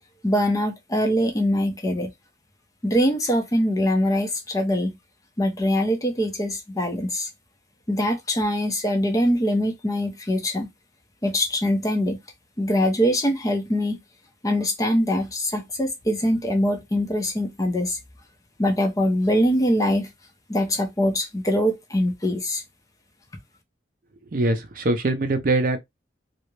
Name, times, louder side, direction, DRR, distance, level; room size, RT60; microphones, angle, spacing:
voice 1, 0.2-2.1 2.8-5.0 5.4-7.3 7.9-10.7 11.2-12.2 12.6-14.0 14.4-18.0 18.6-20.1 20.5-22.6, equal, 20° left, 0.5 m, -23 dB
voice 2, 24.3-25.8, right 2 dB, 45° right, 0.5 m, -22 dB
2.3 x 2.0 x 3.0 m
head